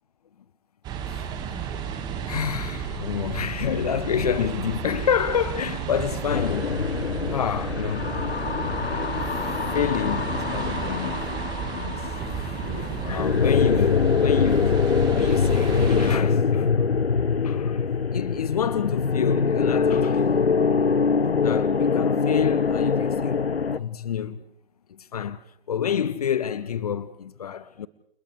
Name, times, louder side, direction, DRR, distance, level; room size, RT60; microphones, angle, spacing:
sound 1, 0.8-16.2, right 8 dB, 15° right, 1.6 m, -33 dB
voice 1, 2.3-6.8 7.3-8.2 9.3-11.3 11.7-14.9 15.1-16.7 17.4-20.5 21.4-24.4 24.9-27.9, left 8 dB, 40° left, 0.9 m, -29 dB
sound 2, 6.3-23.8, left 5 dB, 75° left, 0.8 m, -24 dB
29.5 x 29.5 x 3.3 m
figure-of-eight pair, 135°, 31 cm